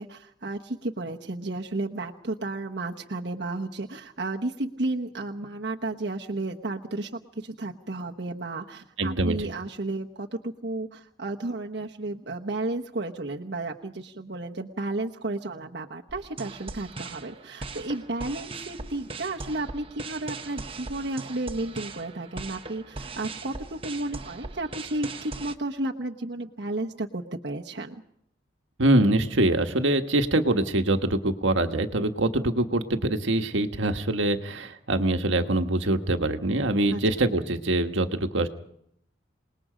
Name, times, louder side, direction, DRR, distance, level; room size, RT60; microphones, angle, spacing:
voice 1, 0.0-28.0 36.9-37.0, right 2 dB, 60° right, 0 dB, 1.1 m, -33 dB
voice 2, 9.0-9.4 28.8-38.5, right 1 dB, 80° right, 6 dB, 1.4 m, -24 dB
sound 1, 16.1-25.6, right 3 dB, 30° right, 1.0 m, -40 dB
27.5 x 20.0 x 5.1 m, 0.71 s
head